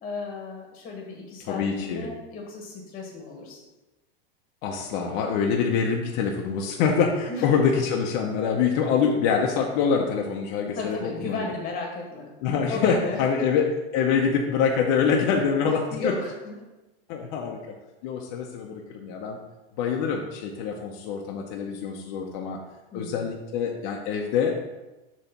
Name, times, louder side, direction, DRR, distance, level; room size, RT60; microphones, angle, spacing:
voice 1, 0.0-3.6 7.3-7.5 10.8-12.3 12.7-13.5 15.9-16.5 22.9-23.3, left 3 dB, 20° left, 0 dB, 1.2 m, -34 dB
voice 2, 1.5-2.1 4.6-11.5 12.4-16.1 17.1-17.8 18.0-19.4 19.8-22.6 22.9-24.6, left 6 dB, 45° left, 0 dB, 0.7 m, -25 dB
6.9 x 3.1 x 5.9 m, 1.1 s
supercardioid pair, 155°, 30 cm